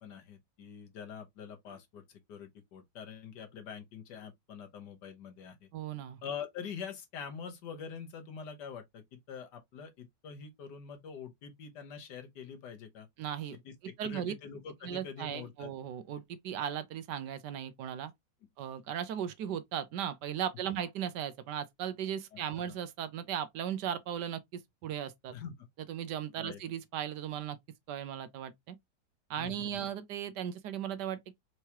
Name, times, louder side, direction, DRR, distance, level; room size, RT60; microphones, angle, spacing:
voice 1, 0.0-5.7 6.2-13.1 13.5-15.7 22.3-22.8 25.3-25.7 26.4-26.6 29.4-29.9, left 7 dB, 70° left, 1.6 m, -45 dB
voice 2, 5.7-6.2 13.2-13.6 14.0-14.3 14.8-18.1 18.6-25.3 25.9-27.6 27.9-28.8 29.3-31.4, right 9 dB, 75° right, 1.2 m, -37 dB
4.6 x 3.0 x 2.8 m
omnidirectional pair, 1.9 m